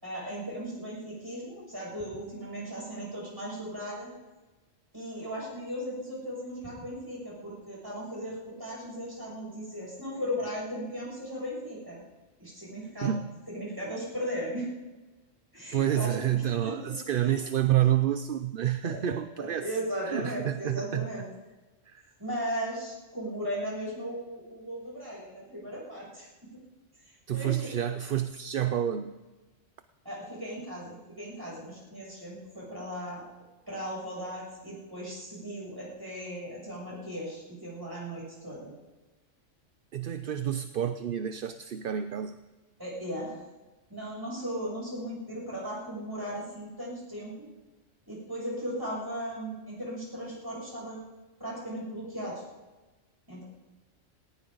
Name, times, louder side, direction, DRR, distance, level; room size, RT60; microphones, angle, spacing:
voice 1, 0.0-4.1 4.9-12.0 12.4-13.1 13.5-14.7 15.5-17.4 18.8-21.3 22.2-26.3 27.0-27.7 30.0-33.2 33.7-38.7 42.8-43.4 43.9-47.5 48.1-51.0 51.4-52.4 53.3-53.4, equal, 15° right, -6 dB, 7.3 m, -37 dB
voice 2, 13.0-13.3 15.7-19.6 20.1-21.1 21.9-22.0 27.3-29.2 39.9-42.4, right 11 dB, 55° right, 10 dB, 0.7 m, -29 dB
18.5 x 18.5 x 4.0 m, 1.2 s
omnidirectional pair, 1.3 m